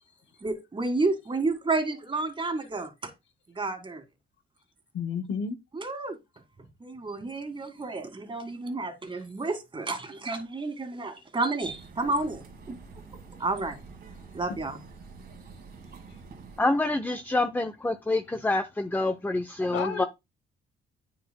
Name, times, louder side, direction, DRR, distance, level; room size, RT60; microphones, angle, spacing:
voice 1, 0.4-3.1 3.5-4.0 5.7-6.2 6.8-12.8 13.4-13.8 14.3-14.8, right 3 dB, 25° right, 1.8 m, -31 dB
voice 2, 4.9-5.6 19.7-20.0, left 6 dB, 70° left, 0.9 m, -31 dB
sound 1, 11.6-16.6, right 5 dB, 55° right, 1.6 m, -47 dB
voice 3, 16.6-20.0, left 2 dB, 10° left, 0.6 m, -27 dB
9.1 x 6.3 x 2.2 m
cardioid pair, 90°, 20 cm